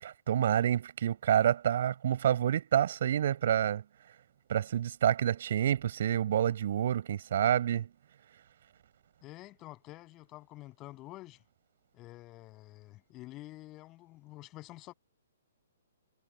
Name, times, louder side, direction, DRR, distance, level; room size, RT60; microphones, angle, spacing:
voice 1, 0.0-3.8 4.5-7.9, right 10 dB, 50° right, 6.2 m, -28 dB
voice 2, 9.2-11.4 11.9-14.9, left 18 dB, 25° left, 8.0 m, -49 dB
figure-of-eight pair, 120°, 0 cm